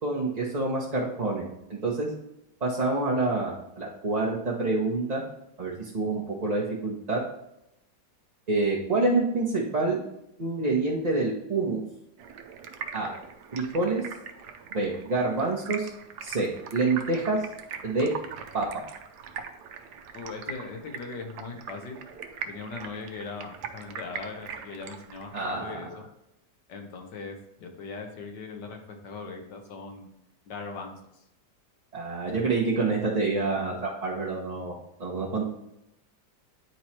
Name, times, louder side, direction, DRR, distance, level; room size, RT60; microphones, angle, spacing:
voice 1, 0.0-2.1 2.6-5.2 5.6-7.2 8.5-10.0 10.4-11.8 12.9-13.1 13.5-14.0 14.7-15.9 16.2-17.4 17.8-18.1 18.5-18.8 25.3-25.8 31.9-34.7 35.0-35.5, right 3 dB, 30° right, -5 dB, 0.8 m, -27 dB
Stream, 12.2-25.6, right 7 dB, 75° right, 1.2 m, -41 dB
voice 2, 20.1-22.0 22.5-26.1 26.7-30.1 30.5-30.9, left 4 dB, 85° left, 4 dB, 1.7 m, -39 dB
9.2 x 3.1 x 4.3 m, 0.83 s
omnidirectional pair, 1.8 m